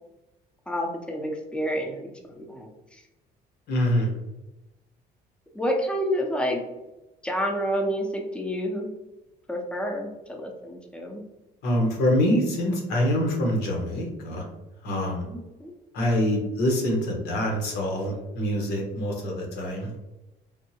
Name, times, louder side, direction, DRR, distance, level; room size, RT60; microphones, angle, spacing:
voice 1, 0.7-3.0 5.5-6.6 7.2-8.9 9.5-11.2 15.3-15.7, equal, 5° left, 1 dB, 0.6 m, -29 dB
voice 2, 3.7-4.1 11.6-14.4 14.8-15.2 15.9-20.0, equal, 80° left, 0 dB, 1.0 m, -25 dB
3.6 x 2.1 x 2.8 m, 1.0 s
cardioid pair, 110°, 17 cm